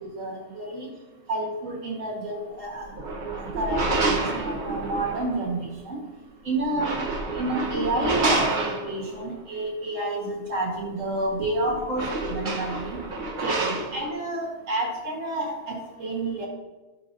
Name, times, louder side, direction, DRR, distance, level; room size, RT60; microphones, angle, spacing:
voice 1, 0.1-0.9 1.3-2.9 3.4-6.0 6.4-7.0 7.3-13.0 13.4-16.5, right 2 dB, 80° right, -4 dB, 1.9 m, -29 dB
sound 1, 2.8-5.5 6.6-9.3 11.2-11.3 11.6-14.1, right 3 dB, 45° right, 0.9 m, -28 dB
10.5 x 3.8 x 2.6 m, 1.1 s
omnidirectional pair, 1.3 m